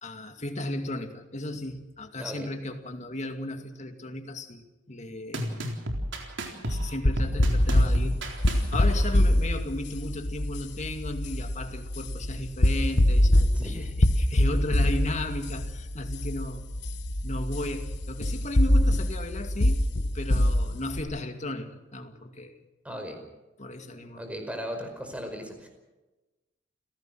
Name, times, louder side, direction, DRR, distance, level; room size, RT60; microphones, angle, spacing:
voice 1, 0.0-4.6 4.9-5.7 6.7-8.2 8.5-16.7 17.2-19.9 20.1-22.6 23.6-24.2, left 1 dB, 40° left, 6 dB, 2.3 m, -35 dB
voice 2, 2.2-2.5 13.5-13.9 22.8-23.2 24.1-25.7, equal, 5° right, 4 dB, 5.1 m, -37 dB
sound 1, 5.3-9.2, equal, 70° right, 4.0 m, -32 dB
sound 2, 7.1-21.0, left 1 dB, 65° left, 1.3 m, -24 dB
29.5 x 17.5 x 6.2 m, 1.1 s
head